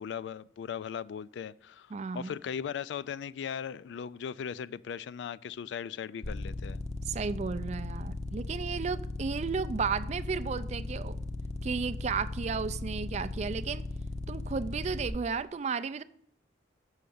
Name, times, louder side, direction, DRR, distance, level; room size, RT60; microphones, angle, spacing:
voice 1, 0.0-6.8, left 7 dB, 75° left, 0.3 m, -38 dB
voice 2, 1.9-2.4 7.1-11.2 11.6-13.8 14.3-16.0, right 5 dB, 35° right, 0.3 m, -33 dB
sound 1, 6.2-15.1, left 2 dB, 40° left, 0.6 m, -37 dB
6.6 x 6.3 x 7.1 m
head